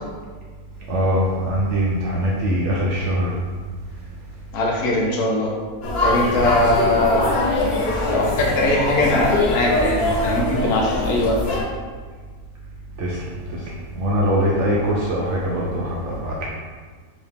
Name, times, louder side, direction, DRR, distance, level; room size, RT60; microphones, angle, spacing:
voice 1, 0.9-3.4 6.2-6.5 13.0-16.5, equal, 65° right, -4 dB, 0.7 m, -22 dB
voice 2, 4.5-5.5 6.0-7.4 8.1-11.4, left 1 dB, 80° left, -2 dB, 1.2 m, -20 dB
sound 1, 5.8-11.6, left 2 dB, 55° left, 0.7 m, -23 dB
3.1 x 2.8 x 3.5 m, 1.5 s
omnidirectional pair, 1.6 m